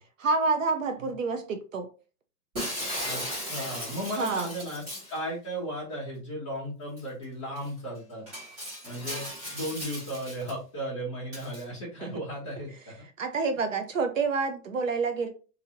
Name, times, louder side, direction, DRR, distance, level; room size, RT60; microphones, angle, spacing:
voice 1, 0.2-1.9 4.2-4.5 12.0-12.1 13.2-15.3, right 4 dB, 55° right, 0.5 m, -28 dB
Shatter, 2.5-5.2 7.0-7.1 7.5-7.7 8.3-10.5 11.3-11.6, equal, 25° right, 1.3 m, -36 dB
voice 2, 3.0-4.8 5.1-8.3 8.8-12.9, equal, 20° left, 0.8 m, -35 dB
2.7 x 2.6 x 2.7 m
hypercardioid pair, 180°, 46 cm